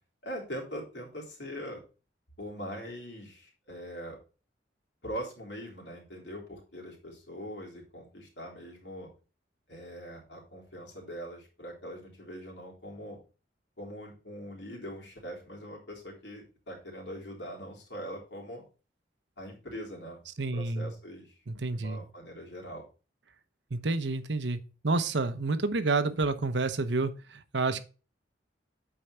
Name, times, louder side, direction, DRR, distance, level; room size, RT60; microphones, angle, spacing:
voice 1, 0.2-1.8 2.4-4.2 5.0-9.1 9.7-13.2 13.8-18.6 19.4-20.2 20.5-21.4 21.7-22.8, equal, 75° left, 3.4 m, -42 dB
voice 2, 20.4-20.9 21.5-22.0 23.7-27.8, right 3 dB, 75° right, 0.9 m, -29 dB
8.7 x 4.6 x 4.4 m
head